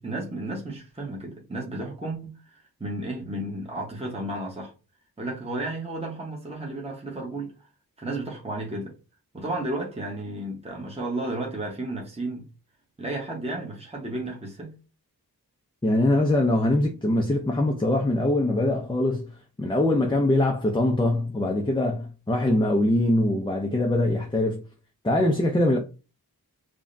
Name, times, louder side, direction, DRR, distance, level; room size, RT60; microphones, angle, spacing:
voice 1, 0.0-4.7 5.2-7.5 8.0-8.9 9.3-12.4 13.0-14.8, right 2 dB, 15° right, 1.1 m, -33 dB
voice 2, 15.8-19.2 19.6-24.7 25.0-25.8, left 1 dB, 15° left, 0.6 m, -23 dB
4.9 x 2.4 x 2.6 m
cardioid pair, 40°, 39 cm